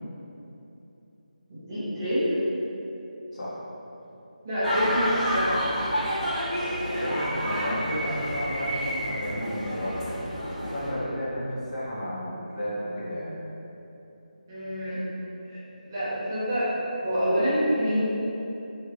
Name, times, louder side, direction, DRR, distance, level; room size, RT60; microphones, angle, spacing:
voice 1, 1.5-2.3 4.4-5.5 14.5-15.0 15.5-16.7 17.0-18.0, equal, 20° right, -12 dB, 0.7 m, -27 dB
sound 1, 4.6-10.9, equal, 5° left, 1.2 m, -29 dB
voice 2, 6.8-10.2 10.6-13.3, equal, 50° left, -8 dB, 1.0 m, -32 dB
3.2 x 2.4 x 3.0 m, 2.9 s
figure-of-eight pair, 170°, 5 cm